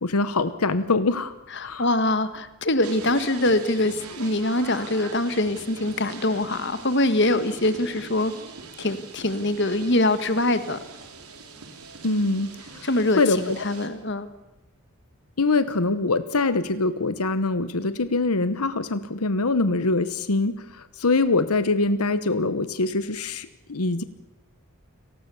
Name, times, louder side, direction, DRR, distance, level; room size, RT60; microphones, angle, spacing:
voice 1, 0.0-1.3 1.6-1.9 12.0-12.5 12.7-12.8 13.2-13.5 15.4-20.5 21.0-24.0, left 3 dB, 90° left, 12 dB, 1.1 m, -23 dB
voice 2, 1.5-8.3 8.8-10.8 12.8-14.3, left 1 dB, 50° left, 11 dB, 1.6 m, -23 dB
sound 1, 2.8-13.9, right 4 dB, 90° right, 4.0 m, -42 dB
29.5 x 19.0 x 7.1 m, 0.98 s
head